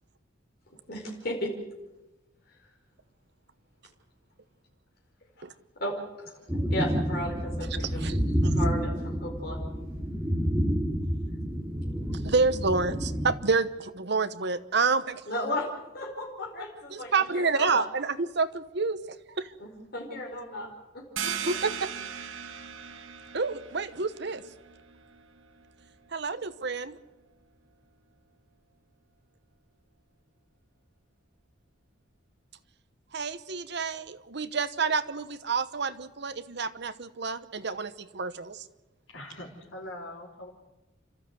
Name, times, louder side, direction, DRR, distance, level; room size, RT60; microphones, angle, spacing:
voice 1, 0.9-1.5 5.8-6.3 6.7-8.0 8.5-9.6 15.3-15.7 15.9-17.9 19.6-21.5, left 1 dB, 55° left, -2 dB, 4.9 m, -35 dB
sound 1, 6.5-13.3, equal, 10° right, 2.7 m, -29 dB
voice 2, 7.8-8.2 8.4-8.5 12.2-15.2 16.9-19.0 19.3-19.5 21.5-21.7 23.3-24.4 26.1-27.0 33.1-38.6, right 4 dB, 60° right, 12 dB, 1.0 m, -29 dB
sound 2, 21.2-26.5, right 8 dB, 90° right, 1.5 m, -39 dB
voice 3, 39.1-40.5, left 1 dB, 80° left, -2 dB, 4.0 m, -42 dB
30.0 x 13.0 x 7.9 m, 1.0 s
head